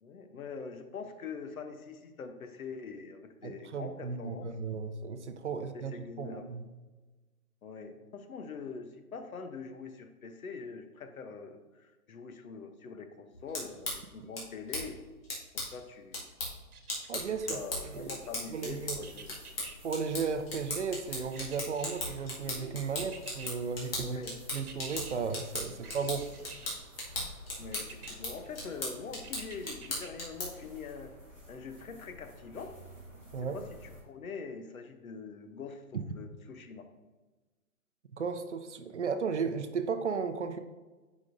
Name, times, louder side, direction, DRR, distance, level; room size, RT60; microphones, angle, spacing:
voice 1, 0.0-4.5 5.7-6.5 7.6-15.0 15.5-16.3 17.3-19.4 24.0-24.4 25.7-25.9 27.6-31.1 31.5-32.7 33.5-36.9, left 5 dB, 70° left, 7 dB, 0.9 m, -44 dB
voice 2, 3.4-6.7 14.2-14.3 17.1-18.2 18.5-19.0 19.8-24.2 24.5-26.2 33.3-33.6 35.9-36.0 38.1-40.6, right 5 dB, 50° right, 8 dB, 0.6 m, -35 dB
sound 1, 13.3-30.7, left 2 dB, 40° left, 2.1 m, -39 dB
sound 2, 16.7-17.5 19.0-19.8 21.3-22.3 23.0-23.5 24.5-25.2 25.8-26.8 27.7-28.1 29.2-30.1 30.6-30.7, right 5 dB, 80° right, 1.2 m, -49 dB
sound 3, 17.2-34.0, equal, 10° left, 0.7 m, -52 dB
9.7 x 5.2 x 2.6 m, 1.2 s
hypercardioid pair, 175°, 44 cm